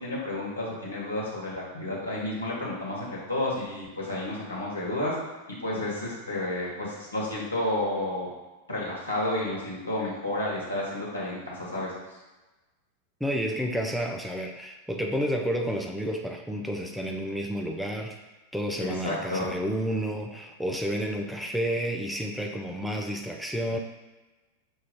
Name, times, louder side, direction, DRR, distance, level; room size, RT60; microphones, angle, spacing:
voice 1, 0.0-5.1 5.6-8.3 8.7-11.9 18.8-19.5, left 1 dB, 80° left, -6 dB, 1.3 m, -31 dB
voice 2, 13.2-18.2 18.5-23.8, equal, ahead, 2 dB, 0.4 m, -30 dB
6.0 x 2.3 x 3.6 m, 1.2 s
figure-of-eight pair, 90°, 0 cm